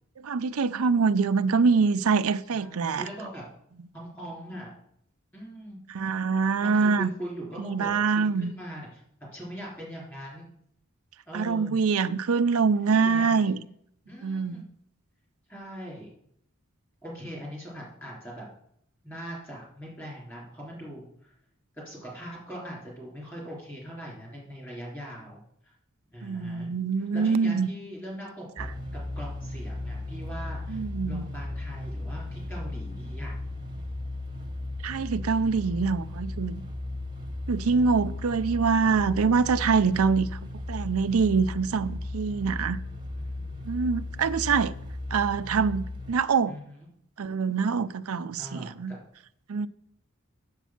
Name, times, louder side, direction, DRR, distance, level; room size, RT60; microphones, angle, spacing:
voice 1, 0.2-3.1 5.9-7.1 7.6-8.5 11.3-13.6 14.2-14.6 26.2-27.7 28.6-28.7 30.7-31.2 34.8-36.6 37.5-40.4 40.7-42.8 43.7-44.7 45.1-46.5 47.2-48.9 49.5-49.7, right 5 dB, 85° right, 0.5 m, -25 dB
voice 2, 2.5-3.4 3.9-4.7 5.3-5.8 6.6-9.0 9.3-10.5 11.3-11.8 13.0-13.3 14.1-14.7 15.5-16.1 17.0-18.5 19.0-21.3 21.9-25.7 26.1-26.7 27.0-28.7 29.2-33.3 43.2-43.5 46.5-46.8 48.4-49.1, equal, 10° left, 3.8 m, -41 dB
sound 1, 28.6-46.1, left 2 dB, 20° right, 1.1 m, -36 dB
8.2 x 7.2 x 5.9 m
head